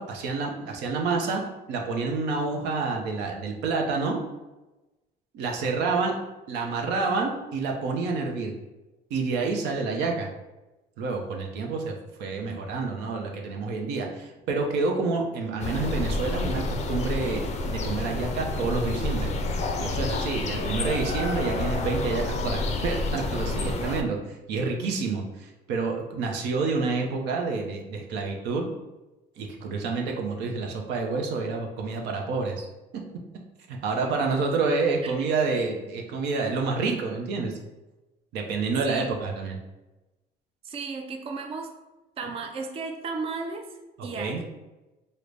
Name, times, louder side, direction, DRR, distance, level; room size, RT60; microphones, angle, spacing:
voice 1, 0.0-1.4 1.7-4.2 5.3-6.2 6.5-8.5 9.1-10.3 11.0-11.9 12.2-19.3 19.8-28.7 29.4-32.7 33.7-37.6 38.3-39.6 44.0-44.4, right 4 dB, 85° right, 1 dB, 0.6 m, -28 dB
sound 1, 15.6-24.0, left 2 dB, 40° left, 0.4 m, -29 dB
voice 2, 40.6-41.7 42.2-44.4, right 4 dB, 35° right, 4 dB, 0.4 m, -34 dB
3.7 x 2.1 x 3.2 m, 1.1 s
cardioid pair, 110°, 17 cm